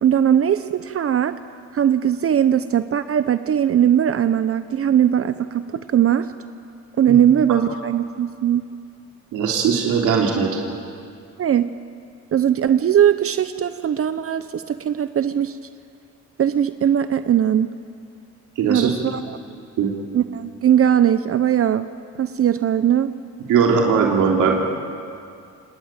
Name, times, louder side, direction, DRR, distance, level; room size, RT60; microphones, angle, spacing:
voice 1, 0.0-1.4 1.7-6.3 7.0-8.6 11.4-11.6 12.3-15.6 16.4-17.7 18.7-19.4 20.1-21.9 22.2-23.1, right 9 dB, 50° right, 12 dB, 0.8 m, -19 dB
voice 2, 9.3-10.5 18.6-18.9 19.8-19.9 23.5-24.5, right 6 dB, 80° right, -1 dB, 3.2 m, -19 dB
28.0 x 19.5 x 8.9 m, 2.4 s
cardioid pair, 90°, 30 cm